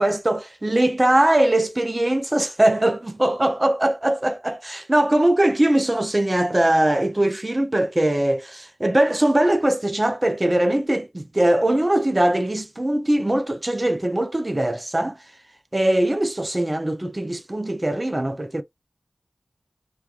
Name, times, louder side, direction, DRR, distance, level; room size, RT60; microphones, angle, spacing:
voice 1, 0.0-15.2 15.7-18.6, right 1 dB, 30° right, 0.5 m, -21 dB
3.1 x 2.3 x 2.4 m
wide cardioid pair, 65°, 0 cm